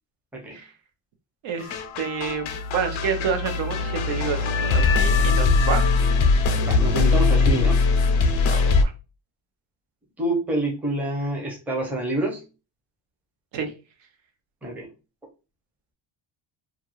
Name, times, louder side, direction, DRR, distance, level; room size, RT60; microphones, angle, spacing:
voice 1, 1.4-5.8 8.5-8.9 13.5-13.7, right 6 dB, 65° right, 5 dB, 0.7 m, -29 dB
sound 1, 1.6-8.8, left 4 dB, 75° left, 0.6 m, -21 dB
voice 2, 6.6-7.8 10.2-12.4 14.6-14.9, right 1 dB, 5° right, -1 dB, 0.6 m, -27 dB
2.4 x 2.3 x 2.9 m, 0.31 s
cardioid pair, 155°, 48 cm